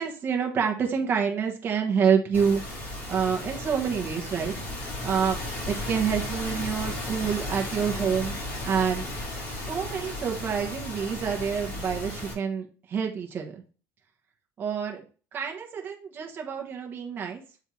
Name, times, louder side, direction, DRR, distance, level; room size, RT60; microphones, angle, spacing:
voice 1, 0.0-2.6 3.1-8.4 8.6-9.1 9.5-13.6 14.6-15.0 15.3-17.4, right 7 dB, 25° right, 1 dB, 1.1 m, -28 dB
sound 1, 2.3-12.3, left 1 dB, 30° left, 2.7 m, -34 dB
7.0 x 3.4 x 4.4 m, 0.36 s
cardioid pair, 175°, 7 cm